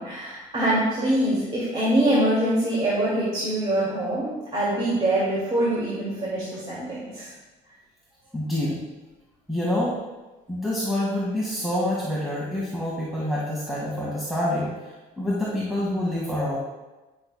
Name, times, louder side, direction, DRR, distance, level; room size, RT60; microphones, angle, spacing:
voice 1, 0.0-7.3, right 1 dB, 30° right, -6 dB, 2.2 m, -24 dB
voice 2, 8.3-8.8 9.5-10.0 10.5-14.7 15.2-16.6, left 1 dB, ahead, -7 dB, 1.7 m, -26 dB
11.0 x 6.2 x 2.2 m, 1.1 s
cardioid pair, 110°, 17 cm